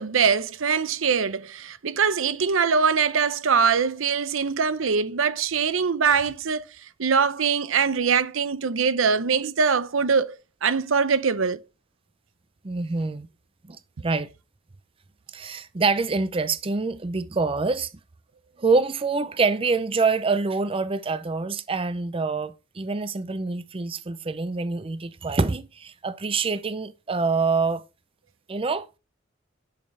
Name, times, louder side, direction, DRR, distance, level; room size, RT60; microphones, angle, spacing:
voice 1, 0.0-6.6 7.0-11.6, right 6 dB, 85° right, 0.7 m, -23 dB
voice 2, 12.6-13.3 13.7-14.3 15.3-17.9 18.6-27.8 28.5-28.9, right 4 dB, 30° right, 0.5 m, -26 dB
10.5 x 6.4 x 3.3 m
head